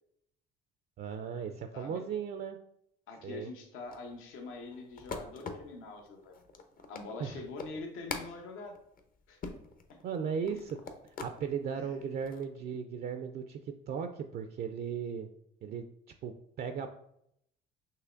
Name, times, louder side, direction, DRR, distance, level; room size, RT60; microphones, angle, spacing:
voice 1, 1.0-2.6 3.2-3.5 7.2-7.4 10.0-10.8 11.0-15.3 15.6-15.9 16.2-16.9, right 7 dB, 50° right, 7 dB, 0.4 m, -37 dB
voice 2, 1.7-2.0 3.1-6.4 6.9-8.7 9.3-9.4 10.5-10.6 11.7-12.0, left 3 dB, 75° left, 3 dB, 0.9 m, -44 dB
sound 1, 3.9-11.4 11.9-12.5, left 4 dB, 40° left, 0.7 m, -44 dB
5.7 x 3.0 x 2.5 m, 0.75 s
supercardioid pair, 70°, 21 cm